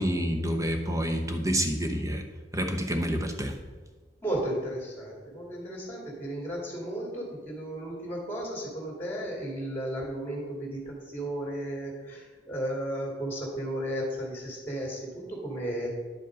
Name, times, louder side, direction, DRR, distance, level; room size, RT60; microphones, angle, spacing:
voice 1, 0.0-2.2 2.5-3.5, equal, 20° right, 5 dB, 0.8 m, -28 dB
voice 2, 4.2-15.9, right 1 dB, 15° left, -2 dB, 2.6 m, -34 dB
10.5 x 5.2 x 5.1 m, 1.4 s
head